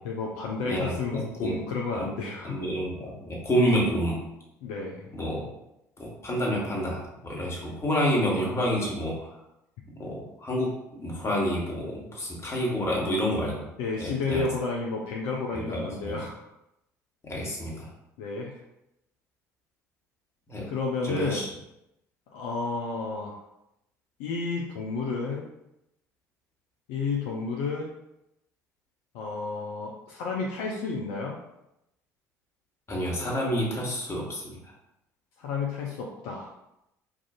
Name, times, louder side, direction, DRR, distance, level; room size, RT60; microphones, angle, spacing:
voice 1, 0.0-2.6 4.6-5.1 13.8-16.5 18.2-18.6 20.7-21.4 22.3-23.4 24.2-25.5 26.9-27.9 29.1-31.4 35.4-36.5, left 4 dB, 65° left, -1 dB, 0.5 m, -31 dB
voice 2, 0.6-1.5 1.9-2.1 2.4-4.2 5.1-5.5 6.0-9.3 9.9-13.6 14.0-14.5 15.5-16.2 17.2-17.9 20.5-20.6 21.0-21.5 32.9-34.6, equal, 30° left, -3 dB, 1.4 m, -29 dB
4.7 x 2.5 x 2.4 m, 0.87 s
figure-of-eight pair, 60°, 9 cm